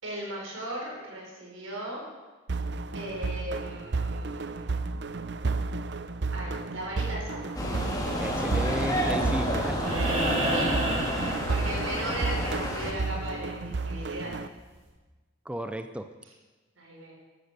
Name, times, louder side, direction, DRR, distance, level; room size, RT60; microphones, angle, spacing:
voice 1, 0.0-2.0 2.9-4.8 6.3-7.4 9.7-14.3 16.8-17.1, right 1 dB, 90° right, -1 dB, 5.4 m, -37 dB
sound 1, 2.5-14.5, right 3 dB, 60° right, 0.6 m, -32 dB
sound 2, 7.5-12.9, equal, 20° left, 2.2 m, -30 dB
voice 2, 8.2-10.0 15.5-16.1, right 1 dB, 5° right, 9 dB, 0.5 m, -34 dB
sound 3, 9.8-12.1 14.0-14.1, right 1 dB, 30° right, 3.9 m, -29 dB
14.5 x 11.5 x 6.8 m, 1.3 s
head